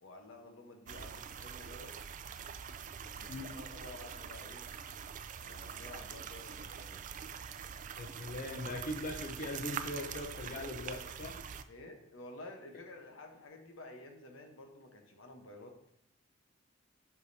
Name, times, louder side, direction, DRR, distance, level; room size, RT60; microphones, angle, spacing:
voice 1, 0.0-1.9 2.9-4.6 5.4-7.1 11.7-15.8, left 2 dB, 90° left, 4 dB, 1.0 m, -51 dB
sound 1, 0.9-11.6, right 7 dB, 40° right, 0.3 m, -44 dB
voice 2, 8.0-11.4, left 1 dB, 45° left, 4 dB, 0.6 m, -40 dB
8.3 x 4.9 x 2.7 m, 0.78 s
head